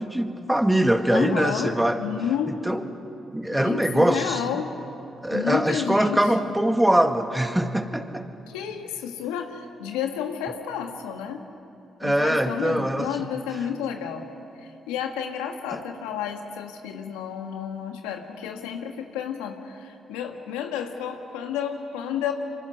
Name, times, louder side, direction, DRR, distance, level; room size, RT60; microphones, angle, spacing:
voice 1, 0.0-2.0 2.6-2.9 3.3-4.6 5.2-8.3 12.0-13.1 15.7-15.8, right 1 dB, 10° right, 7 dB, 1.9 m, -23 dB
voice 2, 1.1-2.6 3.5-4.7 5.3-6.5 8.5-11.4 12.0-14.3 14.6-22.3, left 8 dB, 90° left, 4 dB, 1.5 m, -31 dB
27.0 x 24.0 x 6.6 m, 2.7 s
supercardioid pair, 50°, 0 cm